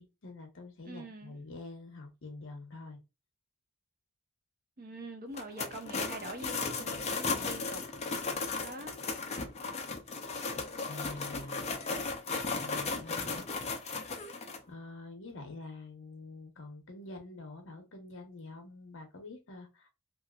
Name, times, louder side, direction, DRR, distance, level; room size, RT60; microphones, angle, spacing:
voice 1, 0.0-3.0 10.8-11.7 12.5-13.4 14.7-19.9, left 2 dB, 60° left, 1.0 m, -46 dB
voice 2, 0.8-1.4 4.8-7.8 8.6-8.9, right 1 dB, 45° right, 0.7 m, -44 dB
sound 1, 5.3-14.6, left 4 dB, 30° left, 0.5 m, -36 dB
2.9 x 2.8 x 2.4 m
head